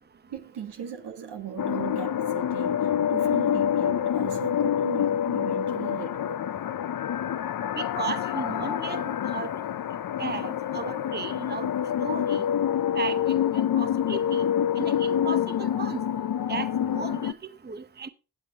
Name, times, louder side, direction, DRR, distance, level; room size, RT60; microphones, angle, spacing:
voice 1, 0.2-6.4, right 8 dB, 85° right, 1.6 m, -38 dB
sound 1, 1.6-17.3, left 9 dB, 60° left, 0.6 m, -27 dB
voice 2, 7.7-9.0 9.3-9.5 10.2-11.7 12.0-12.4 13.0-14.4 14.8-16.0 16.5-16.7 16.9-17.4 17.6-18.1, right 5 dB, 25° right, 0.8 m, -35 dB
20.5 x 7.5 x 2.9 m
cardioid pair, 65°, 40 cm